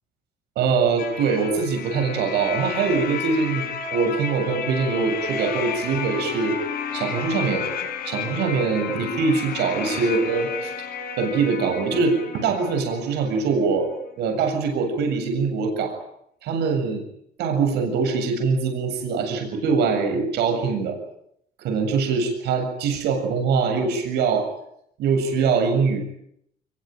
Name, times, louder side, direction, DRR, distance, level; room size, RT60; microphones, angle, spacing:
voice 1, 0.6-6.6 6.9-7.7 8.0-10.7 11.2-16.0 16.4-17.0 17.4-21.0 21.6-24.5 25.0-26.0, right 5 dB, 80° right, 5 dB, 7.5 m, -23 dB
sound 1, 1.0-13.6, left 6 dB, 65° left, 6.3 m, -32 dB
25.0 x 22.5 x 9.2 m, 0.74 s
cardioid pair, 110°, 17 cm